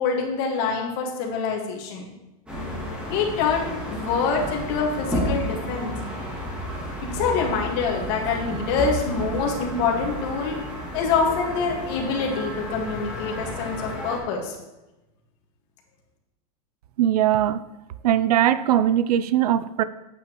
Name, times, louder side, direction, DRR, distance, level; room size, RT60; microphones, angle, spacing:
voice 1, 0.0-2.1 3.1-5.9 7.1-10.6 10.9-14.6, left 5 dB, 45° left, 0 dB, 1.8 m, -25 dB
sound 1, 2.5-14.2, equal, 5° right, 1.8 m, -32 dB
voice 2, 17.0-17.6 18.0-19.8, right 11 dB, 85° right, 15 dB, 0.5 m, -20 dB
8.6 x 7.5 x 3.0 m, 1.0 s
supercardioid pair, 160°, 19 cm